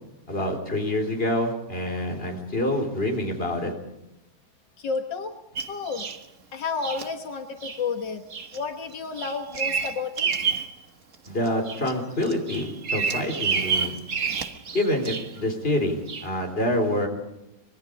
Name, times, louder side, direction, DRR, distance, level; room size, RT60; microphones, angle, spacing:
voice 1, 0.3-3.7 11.3-14.0 14.7-17.1, left 1 dB, 30° left, 3 dB, 4.3 m, -26 dB
voice 2, 4.8-5.3 5.7-6.1 6.5-8.2 8.5-10.3, left 4 dB, 80° left, 5 dB, 2.0 m, -31 dB
Bird vocalization bird call bird song, 5.6-6.2 6.8-7.1 7.6-7.8 8.3-8.6 8.9-10.7 11.1-11.9 12.2-15.4 16.1-16.3, right 5 dB, 45° right, 1.6 m, -29 dB
25.5 x 21.0 x 5.2 m, 0.92 s
omnidirectional pair, 1.9 m